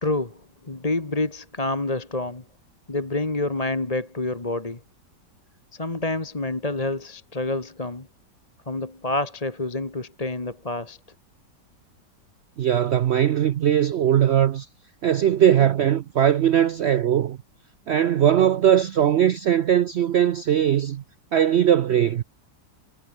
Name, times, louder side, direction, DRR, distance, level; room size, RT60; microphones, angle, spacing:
voice 1, 0.0-2.4 2.9-4.8 5.7-8.1 8.7-11.0, left 2 dB, 20° left, 1.9 m, -28 dB
voice 2, 12.6-14.7 15.0-17.4 17.9-21.0 21.3-22.2, right 10 dB, 90° right, 0.5 m, -20 dB
omnidirectional pair, 1.8 m